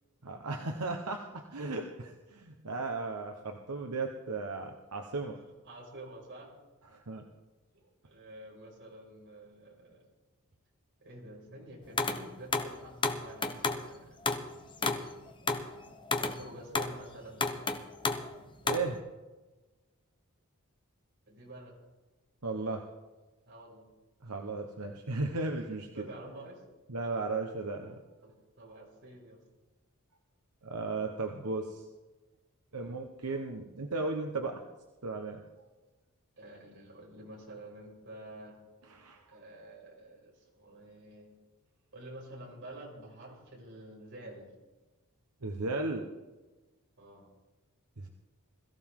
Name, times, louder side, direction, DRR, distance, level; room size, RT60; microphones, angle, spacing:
voice 1, 0.2-5.4 6.9-7.2 18.6-19.0 22.4-22.9 24.2-26.1 26.9-28.0 30.6-31.8 32.7-34.6 35.0-35.4 38.9-39.2 45.4-46.0 48.0-48.1, right 3 dB, 85° right, 3 dB, 1.1 m, -35 dB
voice 2, 5.3-6.5 7.7-10.0 11.0-14.2 16.2-17.4 21.3-21.8 23.5-23.9 25.5-26.6 28.2-28.3 28.6-29.4 32.7-33.0 36.4-38.6 39.3-41.3 41.9-44.5 47.0-47.3, right 1 dB, 55° right, -2 dB, 5.5 m, -49 dB
sound 1, 12.0-12.2 12.5-13.8 14.2-14.5 14.8-17.0 17.4-18.4 18.7-19.0, left 3 dB, 20° left, 0.9 m, -31 dB
21.5 x 14.5 x 3.8 m, 1.2 s
head